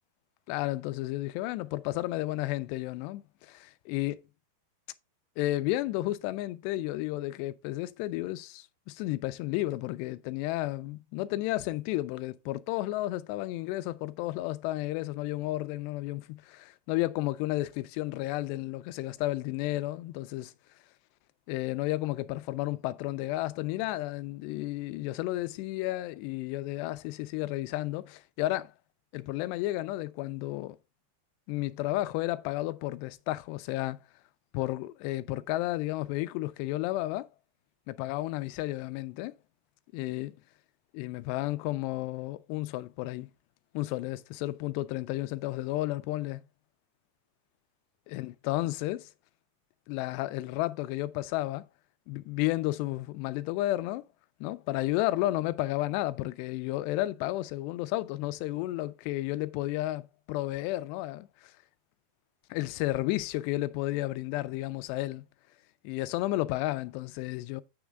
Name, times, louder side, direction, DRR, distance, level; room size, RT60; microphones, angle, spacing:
voice 1, 0.5-4.2 5.4-20.5 21.5-28.7 29.1-30.8 31.5-34.0 34.5-37.3 37.9-39.3 39.9-40.3 40.9-43.3 43.7-46.4 48.1-49.1 49.9-51.7 52.1-54.0 54.4-61.5 62.5-65.2 65.8-67.6, left 17 dB, 90° left, 2.7 m, -32 dB
8.0 x 6.2 x 3.4 m
omnidirectional pair, 4.8 m